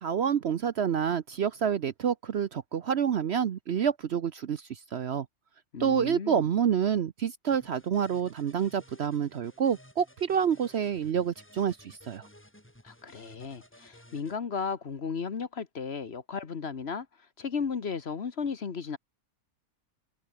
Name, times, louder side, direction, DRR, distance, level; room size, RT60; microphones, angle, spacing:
voice 1, 0.0-5.3 5.8-12.3, right 8 dB, 55° right, 0.9 m, -28 dB
voice 2, 5.7-6.4 12.8-17.1 17.4-19.0, left 5 dB, 50° left, 1.4 m, -34 dB
sound 1, 7.5-14.4, left 1 dB, 10° left, 3.4 m, -56 dB
omnidirectional pair, 1.5 m